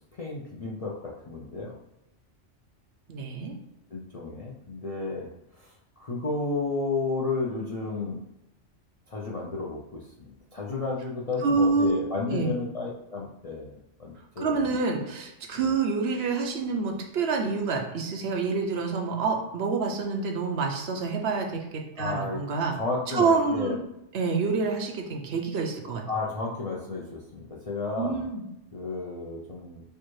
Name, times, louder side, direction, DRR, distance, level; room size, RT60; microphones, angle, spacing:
voice 1, 0.1-1.7 3.9-8.2 9.1-14.7 15.5-15.7 22.0-22.4 22.7-23.7 26.1-28.3 28.7-29.8, left 3 dB, 50° left, -4 dB, 0.4 m, -32 dB
voice 2, 3.1-3.5 11.4-12.0 12.3-12.5 14.4-22.8 23.1-23.8 24.1-26.0 28.0-28.4, right 4 dB, 65° right, 2 dB, 0.8 m, -27 dB
4.5 x 2.4 x 3.1 m, 0.87 s
omnidirectional pair, 1.3 m